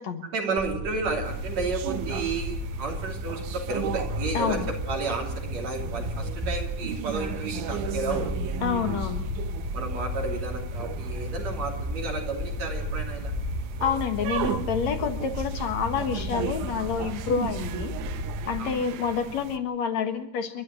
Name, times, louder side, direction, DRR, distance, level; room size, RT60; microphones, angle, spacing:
voice 1, 0.3-8.5 9.7-13.3 18.6-18.9, right 4 dB, 65° right, 2 dB, 4.2 m, -32 dB
sound 1, 0.6-18.6, left 1 dB, 15° right, 5.9 m, -33 dB
sound 2, 1.2-19.6, right 10 dB, 85° right, 2.5 m, -37 dB
voice 2, 4.3-4.7 8.6-9.2 13.8-17.9 18.5-20.6, left 7 dB, 70° left, 7 dB, 2.7 m, -28 dB
29.0 x 12.5 x 7.8 m, 0.77 s
omnidirectional pair, 3.4 m